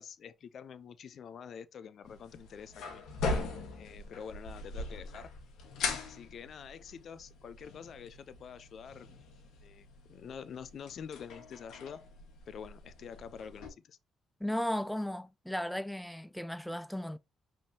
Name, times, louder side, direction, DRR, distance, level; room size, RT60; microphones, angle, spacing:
voice 1, 0.0-3.0 3.8-5.3 6.0-9.3 9.6-12.0 12.5-14.0, left 7 dB, 60° left, 0.5 m, -47 dB
sound 1, 2.0-13.7, left 3 dB, 80° left, 1.3 m, -41 dB
voice 2, 14.4-17.2, left 1 dB, 5° left, 0.4 m, -35 dB
5.3 x 3.6 x 2.7 m
cardioid pair, 90°, 0 cm